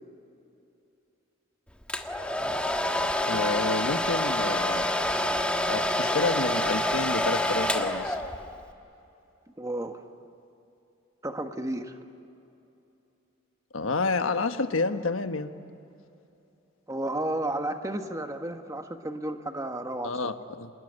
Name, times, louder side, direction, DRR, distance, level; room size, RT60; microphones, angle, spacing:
Domestic sounds home sounds, 1.9-8.6, left 1 dB, 5° left, 1.4 m, -27 dB
voice 1, 3.3-4.9 5.7-8.2 13.7-15.5 20.0-20.7, left 3 dB, 85° left, 8 dB, 1.3 m, -29 dB
voice 2, 9.6-10.0 11.2-11.9 16.9-20.1, right 1 dB, 15° right, 6 dB, 1.4 m, -32 dB
27.5 x 20.5 x 9.9 m, 2.8 s
head